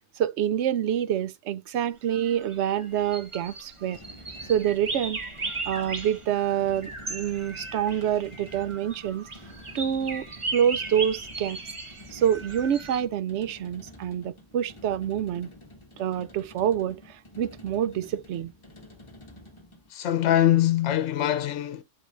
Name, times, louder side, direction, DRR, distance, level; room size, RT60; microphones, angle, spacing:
voice 1, 0.2-4.0 4.5-5.2 5.7-9.3 9.7-11.6 12.1-15.5 16.0-18.5, right 9 dB, 70° right, 0.8 m, -27 dB
sound 1, 2.1-13.0, right 3 dB, 25° right, 1.1 m, -37 dB
sound 2, 3.7-19.9, left 1 dB, 25° left, 1.3 m, -49 dB
voice 2, 19.9-21.8, left 12 dB, 75° left, 1.0 m, -23 dB
11.0 x 3.9 x 2.5 m
omnidirectional pair, 1.3 m